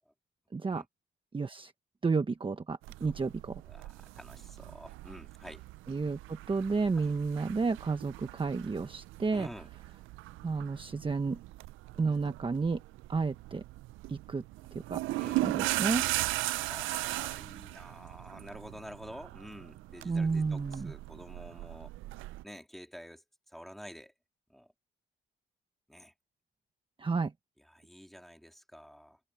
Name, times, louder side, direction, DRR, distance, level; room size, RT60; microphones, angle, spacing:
voice 1, 0.5-0.8 1.3-1.7 2.0-3.6 5.9-9.5 10.4-11.4 12.0-12.8 13.1-13.6 14.1-14.4 14.9-15.0 15.4-16.0 20.0-20.9 27.0-27.3, right 4 dB, 25° right, 1.2 m, -31 dB
sound 1, 2.8-22.4, right 19 dB, 90° right, 0.4 m, -38 dB
voice 2, 3.6-5.6 7.0-7.1 9.3-9.7 15.2-15.5 16.6-21.9 22.4-24.1 24.5-24.7 25.9-26.1 27.6-29.2, equal, ahead, 3.2 m, -49 dB
cardioid pair, 90°, 20 cm